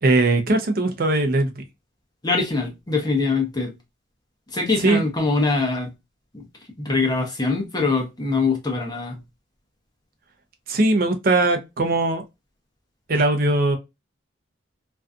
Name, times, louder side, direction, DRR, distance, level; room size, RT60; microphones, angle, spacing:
voice 1, 0.0-1.6 4.8-5.0 10.7-12.2 13.1-13.8, right 2 dB, 50° right, 0.5 m, -20 dB
voice 2, 2.2-3.7 4.5-5.9 6.3-6.4 6.8-9.2, left 3 dB, 20° left, 0.8 m, -23 dB
2.5 x 2.3 x 2.3 m
head